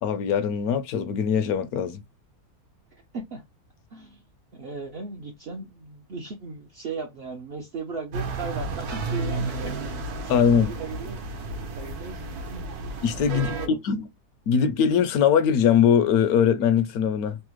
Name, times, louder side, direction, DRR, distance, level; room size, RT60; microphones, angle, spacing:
voice 1, 0.0-2.0 10.3-10.7 13.0-13.5 13.8-14.0 14.5-17.4, left 7 dB, 75° left, 1.0 m, -21 dB
voice 2, 2.9-3.4 3.9-4.2 4.5-9.7 10.2-11.2 11.8-12.7 13.2-13.8, right 4 dB, 60° right, 0.6 m, -37 dB
sound 1, 8.1-13.7, right 3 dB, 75° right, 1.2 m, -32 dB
3.3 x 2.0 x 2.9 m
omnidirectional pair, 1.6 m